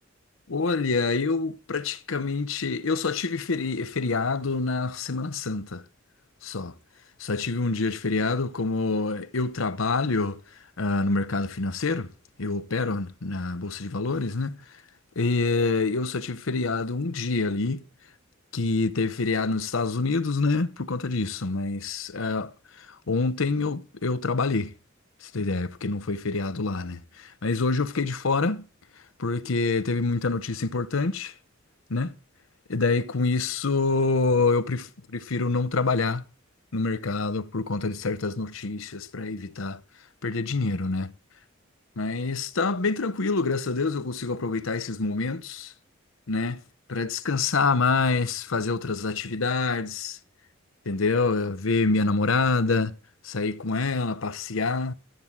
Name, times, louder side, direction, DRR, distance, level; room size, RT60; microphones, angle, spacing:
voice 1, 0.5-5.8 6.4-6.7 7.2-10.4 10.8-12.1 12.4-14.7 15.2-17.8 18.5-24.7 25.2-28.7 29.2-31.3 31.9-32.2 32.7-36.2 36.7-39.8 40.2-41.1 42.0-45.7 46.3-46.6 46.9-50.2 50.9-53.0 53.2-54.9, left 3 dB, 85° left, 0.9 m, -26 dB
13.0 x 8.0 x 7.3 m
head